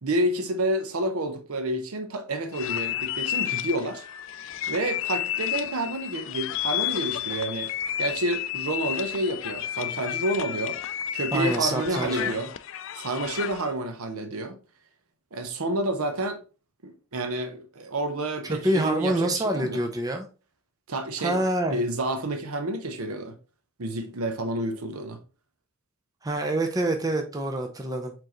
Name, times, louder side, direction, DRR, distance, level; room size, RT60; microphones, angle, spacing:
voice 1, 0.0-4.0 4.7-7.7 8.0-10.8 11.1-12.5 12.9-14.6 15.3-16.4 16.8-19.8 20.9-21.4 21.7-23.4 23.8-25.2, right 1 dB, 85° right, 0.8 m, -29 dB
sound 1, 2.5-13.7, left 12 dB, 65° left, 0.3 m, -31 dB
voice 2, 11.3-12.4 18.4-20.3 21.2-21.8 26.2-28.1, right 1 dB, 15° right, 0.5 m, -26 dB
4.6 x 3.8 x 3.0 m
head